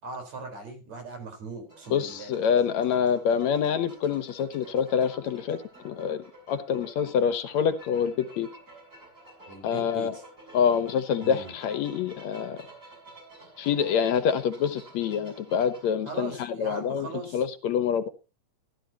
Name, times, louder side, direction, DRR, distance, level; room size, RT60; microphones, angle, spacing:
voice 1, 0.0-2.3 9.5-10.2 11.2-11.6 16.1-17.4, right 3 dB, 65° right, 5.7 m, -39 dB
sound 1, 1.7-15.9, right 1 dB, 25° right, 7.2 m, -50 dB
voice 2, 1.9-8.5 9.6-10.1 10.5-12.6 13.6-17.1 17.3-18.1, left 7 dB, 70° left, 2.2 m, -26 dB
16.0 x 12.5 x 2.9 m
omnidirectional pair, 3.4 m